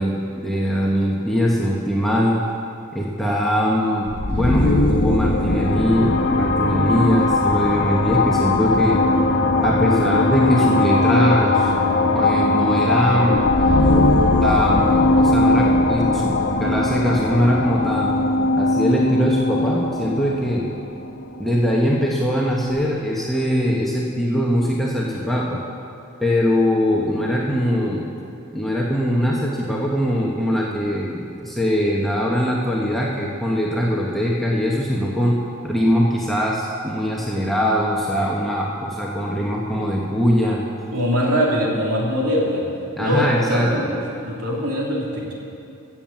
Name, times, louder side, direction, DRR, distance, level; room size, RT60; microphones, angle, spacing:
voice 1, 0.0-2.4 2.9-9.0 9.6-11.7 12.1-13.5 14.4-16.3 16.6-18.2 18.6-20.6 21.4-25.6 26.2-28.0 28.5-35.4 35.6-40.6 43.0-43.9, equal, ahead, -4 dB, 1.1 m, -21 dB
sound 1, 4.1-21.7, left 2 dB, 55° left, 1.1 m, -19 dB
voice 2, 40.9-42.6 43.0-45.3, equal, 85° right, -3 dB, 2.9 m, -22 dB
15.0 x 7.3 x 7.2 m, 2.6 s
head